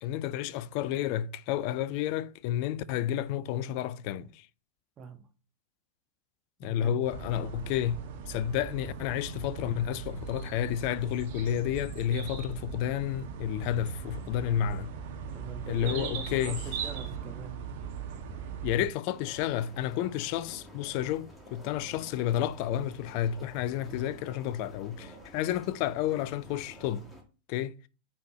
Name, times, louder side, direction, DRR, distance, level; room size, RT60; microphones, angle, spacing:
voice 1, 0.0-4.5 6.6-14.9 15.7-16.6 18.6-27.1 27.5-27.8, left 10 dB, 45° left, 0.4 m, -31 dB
voice 2, 6.6-7.0 15.3-17.6, right 6 dB, 30° right, 1.4 m, -44 dB
sound 1, 7.0-18.9, right 6 dB, 45° right, 1.6 m, -39 dB
sound 2, 19.1-27.2, equal, 5° left, 1.8 m, -50 dB
9.2 x 4.3 x 3.1 m
figure-of-eight pair, 90°, 0 cm